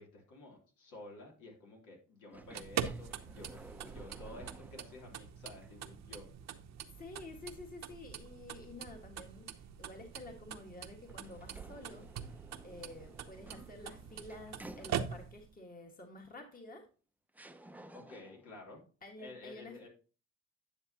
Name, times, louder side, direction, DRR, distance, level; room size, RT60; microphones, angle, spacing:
voice 1, 0.0-6.3 17.9-18.8 19.2-19.9, left 2 dB, 80° left, 0 dB, 3.2 m, -52 dB
sound 1, 2.3-5.2 5.6-5.7 11.1-15.4 16.5-16.6 17.3-18.5, right 1 dB, 5° right, 0.6 m, -55 dB
sound 2, 2.4-15.5, right 8 dB, 60° right, 0.9 m, -44 dB
voice 2, 7.0-9.5 9.8-12.1 12.6-16.9 19.0-19.9, left 2 dB, 30° left, 3 dB, 1.7 m, -50 dB
10.5 x 6.8 x 2.9 m, 0.36 s
cardioid pair, 90°, 30 cm